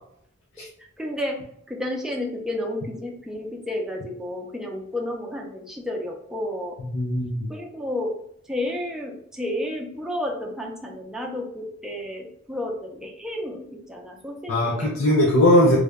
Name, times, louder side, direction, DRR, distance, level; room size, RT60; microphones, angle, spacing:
voice 1, 1.0-1.4 1.7-6.8 7.5-8.2 8.5-15.0, left 1 dB, 5° right, 0 dB, 0.5 m, -31 dB
voice 2, 6.8-7.5 14.5-15.8, left 1 dB, 90° left, -3 dB, 0.6 m, -19 dB
3.3 x 3.2 x 2.3 m, 0.73 s
head